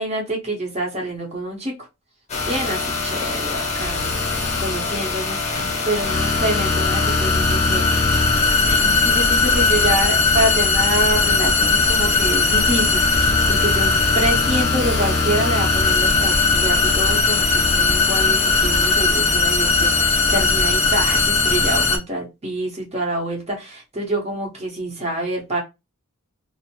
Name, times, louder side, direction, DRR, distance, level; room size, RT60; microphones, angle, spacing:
voice 1, 0.0-1.7 2.4-8.1 8.7-25.6, right 1 dB, 30° right, 1.0 m, -26 dB
sound 1, 2.3-22.0, left 3 dB, 30° left, 0.8 m, -19 dB
2.6 x 2.1 x 2.8 m
head